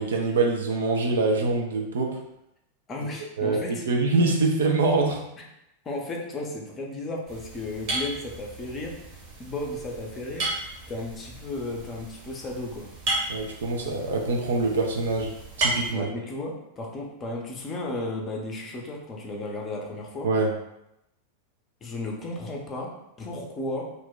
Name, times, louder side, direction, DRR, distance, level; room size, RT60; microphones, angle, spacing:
voice 1, 0.0-2.2 3.4-5.2 13.3-16.1 20.2-20.6, right 3 dB, 65° right, 1 dB, 0.5 m, -24 dB
voice 2, 2.9-3.8 5.8-9.0 9.4-10.5 10.9-12.9 15.9-20.3 21.8-23.8, left 2 dB, 25° left, 0 dB, 0.6 m, -34 dB
sound 1, 7.3-15.9, right 2 dB, 45° right, 1.0 m, -34 dB
2.5 x 2.1 x 3.8 m, 0.85 s
figure-of-eight pair, 90°, 0 cm